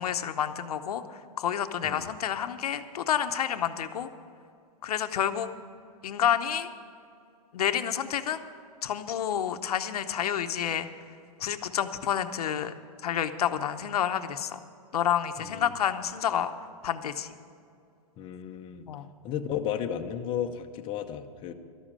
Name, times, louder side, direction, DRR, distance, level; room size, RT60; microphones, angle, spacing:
voice 1, 0.0-4.1 4.8-5.5 6.0-6.7 7.5-8.4 8.8-10.9 11.4-12.7 13.0-14.6 14.9-16.5 16.8-17.4 18.9-19.1, left 9 dB, 80° left, 9 dB, 0.8 m, -29 dB
voice 2, 15.4-15.7 18.2-18.9 19.2-21.5, left 9 dB, 25° left, 4 dB, 0.8 m, -34 dB
13.0 x 7.4 x 8.7 m, 2.5 s
hypercardioid pair, 140°, 19 cm